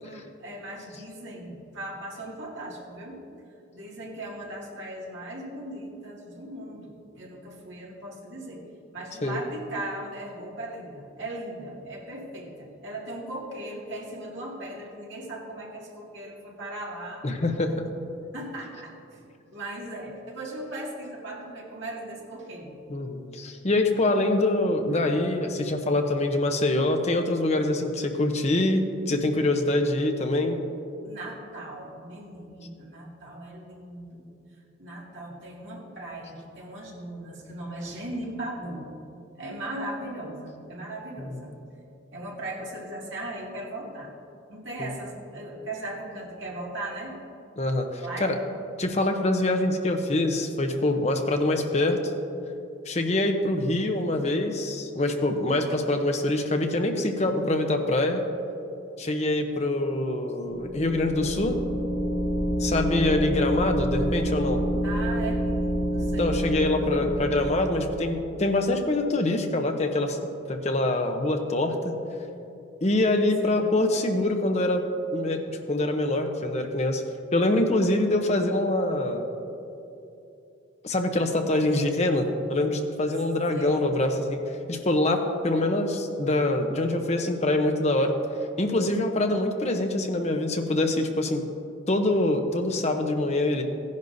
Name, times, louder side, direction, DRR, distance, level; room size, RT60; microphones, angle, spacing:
voice 1, 0.0-3.2 3.7-8.7 8.9-17.2 18.3-19.2 19.5-22.8 31.0-34.3 34.8-38.9 39.4-41.8 42.1-44.1 44.5-47.2 48.0-48.4 64.8-66.4 73.4-73.9 83.5-83.8, right 1 dB, 70° right, -4 dB, 2.1 m, -38 dB
voice 2, 17.2-17.8 22.9-30.6 44.8-44.9 47.6-48.4 48.8-52.0 52.9-58.2 59.0-61.6 62.6-64.6 66.2-70.2 70.5-72.0 72.8-74.8 75.1-77.0 77.3-79.3 80.8-84.4 84.7-88.1 88.6-91.4 91.9-93.6, left 2 dB, 35° left, 4 dB, 0.7 m, -25 dB
sound 1, 60.5-68.2, equal, 35° right, 0.9 m, -28 dB
15.5 x 10.5 x 2.7 m, 2.8 s
head